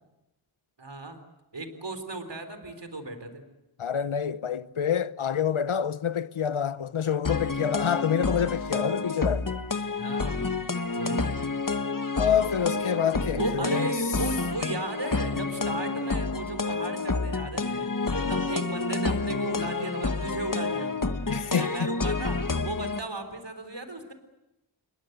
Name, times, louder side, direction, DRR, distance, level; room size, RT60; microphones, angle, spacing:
voice 1, 0.8-1.2 1.5-3.4 9.9-10.6 11.0-11.3 13.4-21.0 21.5-24.1, right 2 dB, 60° right, 3.9 m, -36 dB
voice 2, 3.8-9.6 12.2-13.9 18.2-18.4 21.3-21.9, left 8 dB, 85° left, 0.9 m, -27 dB
sound 1, 7.2-23.0, left 3 dB, 40° left, 1.4 m, -29 dB
29.0 x 21.5 x 7.9 m
wide cardioid pair, 50°, 47 cm